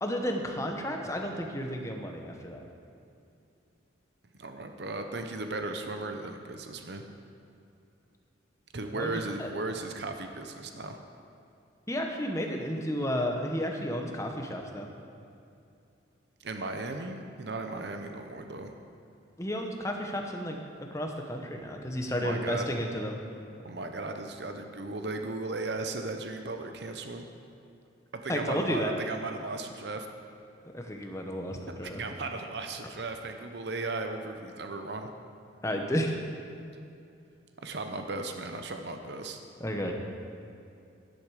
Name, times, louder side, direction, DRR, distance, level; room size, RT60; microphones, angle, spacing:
voice 1, 0.0-2.6 8.9-9.1 9.4-9.5 11.9-14.9 19.4-20.6 20.9-23.2 28.3-28.9 30.7-32.0 35.6-36.1 39.6-39.9, equal, 15° left, 2 dB, 1.0 m, -32 dB
voice 2, 4.4-7.0 8.7-11.0 16.4-18.7 22.1-22.7 23.6-27.3 28.1-30.1 31.8-35.1 37.6-39.4, right 2 dB, 60° right, 5 dB, 0.8 m, -36 dB
12.0 x 10.5 x 4.9 m, 2.6 s
head